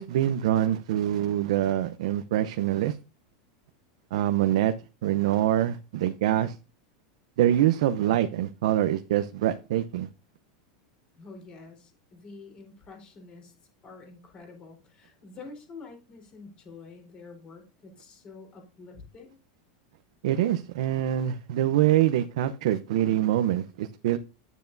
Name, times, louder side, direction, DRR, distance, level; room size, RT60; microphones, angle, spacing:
voice 1, 0.0-3.0 4.1-4.7 5.0-6.6 7.4-10.1 20.2-24.2, right 12 dB, 75° right, 0.7 m, -25 dB
voice 2, 11.2-13.5 13.8-19.4, left 4 dB, 30° left, 4.1 m, -47 dB
10.0 x 9.2 x 2.7 m
supercardioid pair, 145°, 3 cm